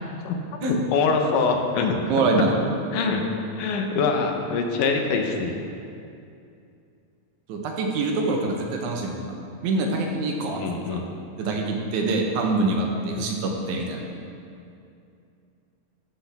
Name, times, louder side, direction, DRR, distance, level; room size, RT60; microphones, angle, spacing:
voice 1, 0.2-2.2 2.9-3.3 3.6-5.6 10.5-11.1, left 4 dB, 85° left, 3 dB, 2.4 m, -24 dB
voice 2, 2.1-2.5 7.5-9.4 9.6-10.6 10.9-11.0 11.4-14.0, right 3 dB, 80° right, 1 dB, 2.2 m, -25 dB
14.0 x 5.9 x 3.4 m, 2.5 s
omnidirectional pair, 3.6 m